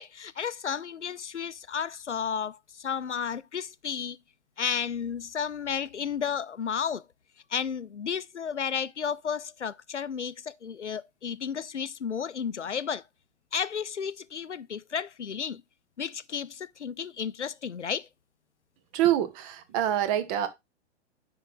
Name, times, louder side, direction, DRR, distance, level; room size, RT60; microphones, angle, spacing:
voice 1, 0.0-4.2 4.6-7.1 7.5-13.0 13.5-15.6 16.0-18.1, left 7 dB, 85° left, 0.5 m, -32 dB
voice 2, 18.9-20.5, right 12 dB, 30° right, 0.9 m, -26 dB
9.8 x 3.9 x 3.6 m
figure-of-eight pair, 105°, 34 cm